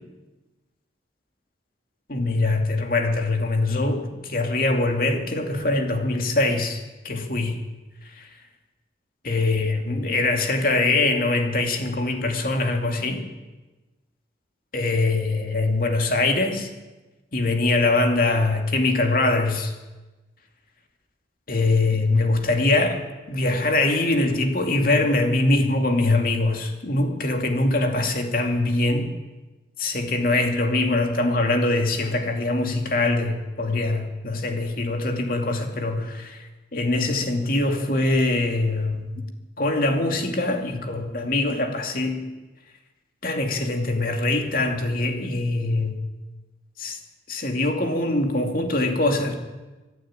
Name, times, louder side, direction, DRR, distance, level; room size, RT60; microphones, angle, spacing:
voice 1, 2.1-7.6 8.0-8.3 9.2-13.3 14.7-16.7 17.3-19.7 21.5-23.0 23.3-29.1 29.8-39.2 39.6-42.2 43.2-46.0 46.8-47.0 47.3-49.3, left 2 dB, 50° left, 4 dB, 2.6 m, -23 dB
25.5 x 11.5 x 9.0 m, 1.2 s
head